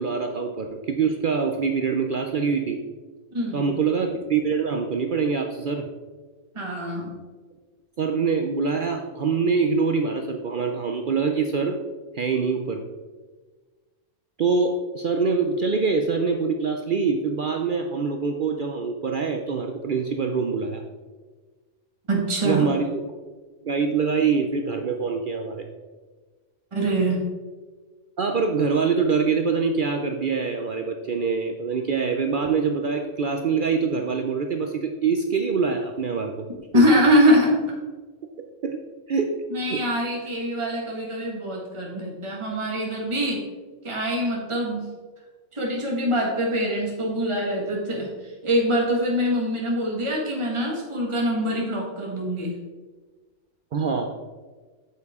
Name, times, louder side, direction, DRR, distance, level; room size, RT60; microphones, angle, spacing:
voice 1, 0.0-2.8 3.5-5.9 8.0-11.8 12.1-12.8 14.4-20.8 22.4-23.0 23.6-25.6 28.2-36.4 36.7-36.9 38.6-38.8 39.1-39.4 39.7-39.8 53.7-54.1, right 5 dB, 55° right, 4 dB, 0.6 m, -24 dB
voice 2, 3.3-3.6 6.5-7.1 22.1-22.7 26.7-27.2 36.7-37.7 39.5-43.4 43.8-44.9 45.5-52.5, equal, 25° right, -2 dB, 1.6 m, -24 dB
8.1 x 7.4 x 3.6 m, 1.4 s
omnidirectional pair, 1.3 m